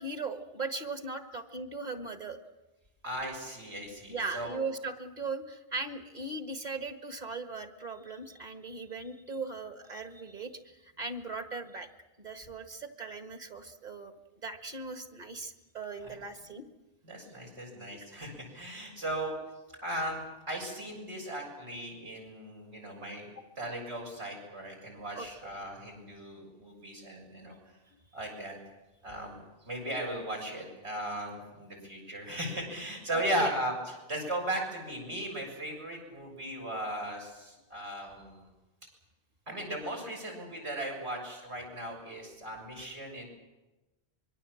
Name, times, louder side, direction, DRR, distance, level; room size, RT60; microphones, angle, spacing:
voice 1, 0.0-2.4 4.1-11.9 12.2-14.1 14.4-16.7 17.9-18.1 23.4-23.5 25.2-25.3 33.1-33.5, right 3 dB, 40° right, 7 dB, 1.8 m, -39 dB
voice 2, 3.0-4.6 16.0-16.2 16.5-16.6 17.0-19.3 19.8-23.3 23.6-27.5 28.1-28.6 29.0-38.5 39.5-43.3, right 1 dB, 85° right, 0 dB, 7.2 m, -37 dB
25.5 x 23.0 x 7.4 m, 1.0 s
omnidirectional pair, 1.1 m